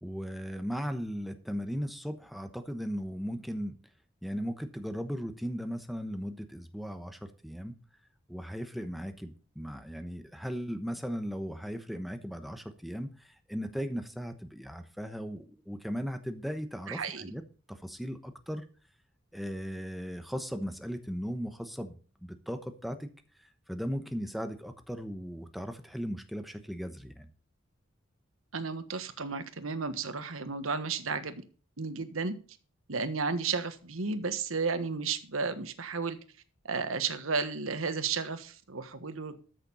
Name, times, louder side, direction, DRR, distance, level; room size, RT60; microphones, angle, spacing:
voice 1, 0.0-3.7 4.2-7.7 8.3-17.4 17.7-18.6 19.3-23.1 23.4-27.3, equal, ahead, 7 dB, 1.0 m, -37 dB
voice 2, 16.9-17.3 28.5-31.4 31.8-32.3 32.9-36.2 36.6-39.3, right 4 dB, 85° right, 10 dB, 1.4 m, -33 dB
13.0 x 6.7 x 5.5 m, 0.38 s
head